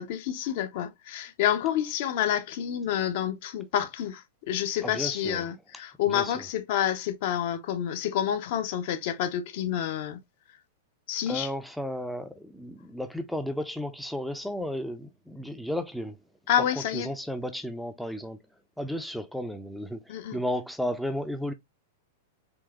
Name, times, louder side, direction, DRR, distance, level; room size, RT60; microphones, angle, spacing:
voice 1, 0.0-10.2 11.1-11.5 16.5-17.1 20.1-20.4, left 10 dB, 55° left, 0.6 m, -28 dB
voice 2, 4.8-5.4 6.1-6.3 11.3-16.1 16.9-18.4 18.8-20.0 20.3-21.5, equal, ahead, 0.4 m, -33 dB
3.7 x 2.7 x 2.2 m
hypercardioid pair, 100°, 0 cm